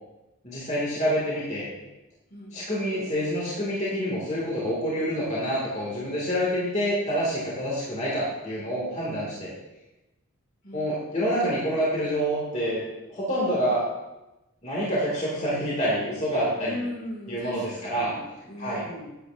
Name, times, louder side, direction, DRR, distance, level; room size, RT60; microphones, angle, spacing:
voice 1, 0.4-1.7 2.5-9.5 10.7-12.8 13.1-13.8 14.6-16.8 17.3-18.1 18.6-18.8, equal, 30° left, -6 dB, 2.3 m, -27 dB
voice 2, 16.5-19.1, left 1 dB, 50° left, -3 dB, 2.6 m, -38 dB
11.5 x 9.0 x 2.7 m, 0.99 s
head